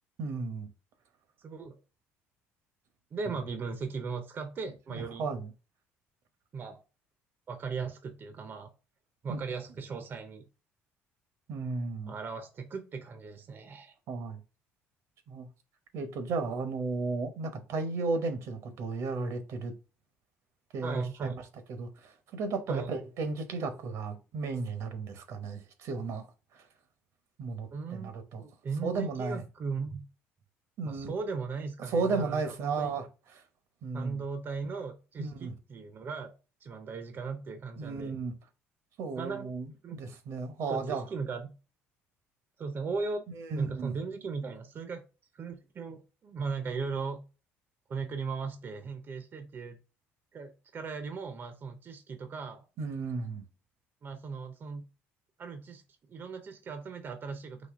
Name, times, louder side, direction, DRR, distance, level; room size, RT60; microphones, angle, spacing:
voice 1, 0.2-0.7 4.9-5.5 9.3-9.4 11.5-12.2 14.1-14.4 15.3-15.5 15.9-19.7 20.7-21.3 21.7-26.3 26.5-26.6 27.4-28.4 28.8-29.4 30.8-31.1 31.9-33.1 33.8-34.2 35.2-35.6 37.8-38.3 39.0-41.0 43.4-43.9 52.8-53.4, right 4 dB, 70° right, 0.9 m, -34 dB
voice 2, 1.4-1.7 3.1-5.3 6.5-6.8 7.5-8.7 9.2-10.4 12.1-13.9 20.8-21.4 22.7-22.9 27.7-28.1 28.4-30.0 30.9-32.9 33.9-36.3 36.6-38.2 39.2-39.5 39.8-40.0 40.7-41.5 42.6-43.3 43.5-45.0 45.3-47.2 47.9-49.8 50.3-52.6 54.0-54.8 55.4-55.8 56.1-57.7, right 5 dB, 45° right, 0.7 m, -37 dB
4.1 x 2.7 x 4.5 m
supercardioid pair, 90°, 5 cm